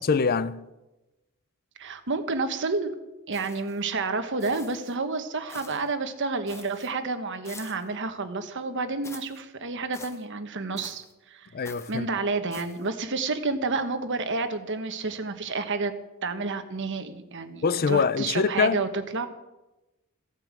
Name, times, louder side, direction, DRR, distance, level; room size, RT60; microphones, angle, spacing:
voice 1, 0.1-0.6 11.5-12.1 17.6-18.8, left 5 dB, 45° left, 0.5 m, -24 dB
voice 2, 1.8-2.9 3.3-11.5 11.9-15.9 16.2-19.3, right 3 dB, 55° right, 1.3 m, -30 dB
sound 1, 3.3-3.8 4.4-5.0 5.5-5.9 6.5-6.9 7.4-7.9 9.0-9.4 9.9-10.2 10.8-11.1 11.6-12.0 12.5-12.9, left 3 dB, 15° left, 1.1 m, -46 dB
15.5 x 9.0 x 7.5 m
head